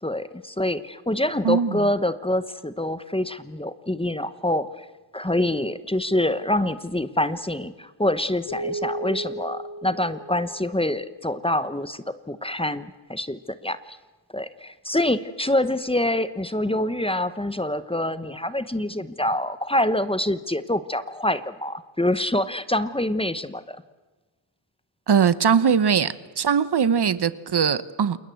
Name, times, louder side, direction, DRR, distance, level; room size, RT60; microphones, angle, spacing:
voice 1, 0.0-4.8 5.1-13.8 14.3-23.8, left 1 dB, 10° left, 13 dB, 1.1 m, -26 dB
voice 2, 1.4-1.8 25.1-28.2, right 7 dB, 55° right, 16 dB, 1.0 m, -21 dB
sound 1, 8.5-11.0, right 1 dB, 75° left, 6.7 m, -34 dB
29.0 x 20.5 x 7.8 m, 1.2 s
wide cardioid pair, 80°, 49 cm